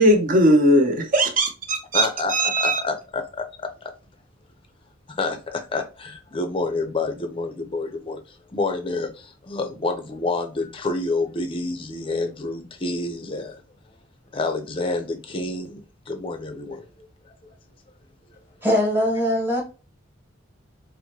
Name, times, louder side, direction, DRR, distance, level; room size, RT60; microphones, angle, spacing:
voice 1, 0.0-2.8, right 1 dB, 40° right, 0.7 m, -19 dB
voice 2, 1.9-3.9 5.1-13.6 14.3-16.9 17.2-17.3, left 3 dB, 25° left, 0.5 m, -28 dB
voice 3, 18.6-19.6, left 1 dB, 10° right, 1.0 m, -21 dB
4.6 x 2.1 x 2.7 m
head